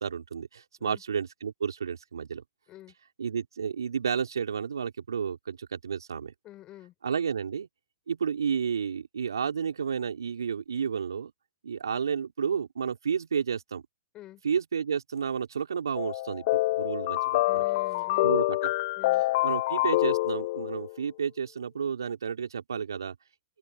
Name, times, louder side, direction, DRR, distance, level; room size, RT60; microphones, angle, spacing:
voice 1, 0.0-2.4 3.2-6.3 7.0-7.7 8.1-11.3 11.6-13.8 14.4-17.6 18.2-18.7 19.4-23.2, right 7 dB, 80° right, 4.1 m, -31 dB
voice 2, 6.4-6.9 14.1-14.4 17.5-18.4 19.0-19.2, left 15 dB, 35° left, 5.9 m, -47 dB
sound 1, 15.9-20.9, left 19 dB, 55° left, 0.6 m, -26 dB
open air
hypercardioid pair, 100°, 2 cm